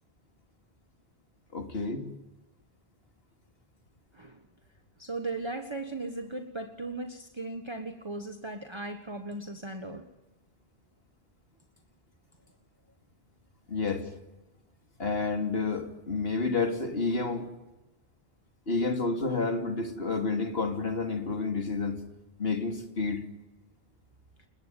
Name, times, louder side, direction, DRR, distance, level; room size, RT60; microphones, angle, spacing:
voice 1, 1.5-2.1 13.7-14.1 15.0-17.5 18.7-22.0 22.4-23.2, left 3 dB, 65° left, 3.1 m, -30 dB
voice 2, 5.0-10.1, right 2 dB, 25° right, 1.5 m, -37 dB
29.5 x 18.5 x 9.3 m
omnidirectional pair, 1.1 m